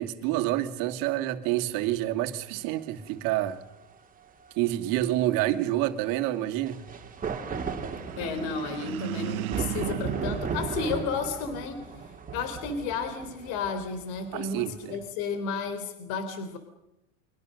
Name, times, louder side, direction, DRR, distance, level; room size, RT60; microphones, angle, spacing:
voice 1, 0.0-3.6 4.6-6.8 14.3-15.0, right 14 dB, 50° right, 2.5 m, -28 dB
sound 1, 2.8-2.9 6.6-15.0, right 5 dB, 20° right, 3.2 m, -36 dB
sound 2, 7.9-11.5, right 14 dB, 80° right, 1.3 m, -36 dB
voice 2, 8.2-12.0 12.3-16.6, left 5 dB, 55° left, 3.7 m, -32 dB
29.0 x 23.5 x 6.6 m
supercardioid pair, 125°, 42 cm